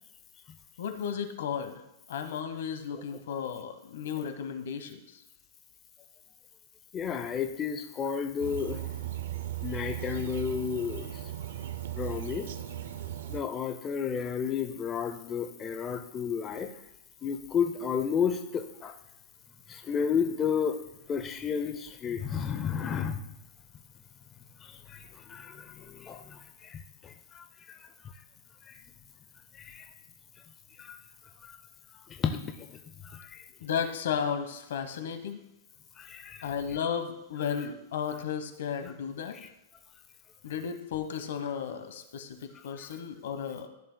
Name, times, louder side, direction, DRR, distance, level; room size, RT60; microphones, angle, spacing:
voice 1, 0.8-1.8 2.1-5.0 33.6-35.4 36.4-39.4 40.4-43.7, left 7 dB, 75° left, 8 dB, 1.1 m, -34 dB
voice 2, 6.9-8.8 9.6-11.1 12.0-12.5 13.3-16.7 17.2-18.9 19.7-20.8 21.1-23.2 24.6-27.4 29.6-29.9 30.8-31.0 31.4-31.5 32.1-32.7 33.0-33.4 36.0-36.5 39.4-39.5, left 7 dB, 20° left, 5 dB, 0.5 m, -32 dB
sound 1, 8.4-13.4, right 13 dB, 70° right, 0.4 m, -37 dB
14.5 x 6.6 x 2.2 m, 0.91 s
supercardioid pair, 160°, 0 cm